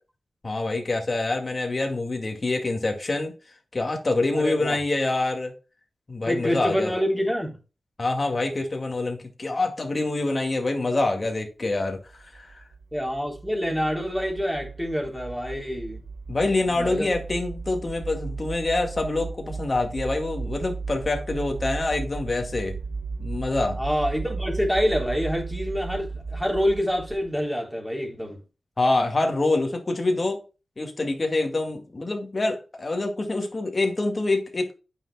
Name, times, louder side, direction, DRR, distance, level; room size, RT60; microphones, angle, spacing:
voice 1, 0.4-3.3 3.7-5.5 6.1-6.9 8.0-12.0 12.3-12.6 16.3-22.8 23.2-23.8 28.8-30.4 30.8-34.7, left 2 dB, 45° left, 2.1 m, -26 dB
voice 2, 4.3-4.8 6.3-7.6 12.9-16.0 16.7-17.1 23.7-28.4, equal, 5° right, 3.4 m, -27 dB
sound 1, 12.1-27.4, right 4 dB, 75° right, 1.0 m, -35 dB
8.8 x 6.3 x 2.2 m
cardioid pair, 45°, 0 cm